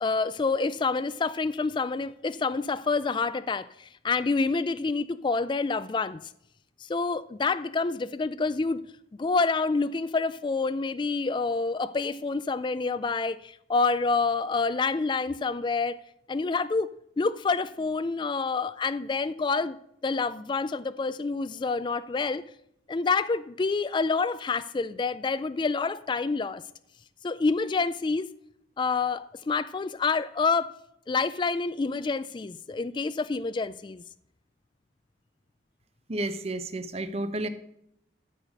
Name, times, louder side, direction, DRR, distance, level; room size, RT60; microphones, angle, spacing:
voice 1, 0.0-6.2 6.8-8.8 9.2-16.0 16.3-19.8 20.0-22.4 22.9-26.6 27.2-28.3 28.8-30.7 31.1-34.0, left 4 dB, 25° left, 0.3 m, -27 dB
voice 2, 36.1-37.5, right 1 dB, 35° right, 0.9 m, -31 dB
13.0 x 4.9 x 6.4 m
head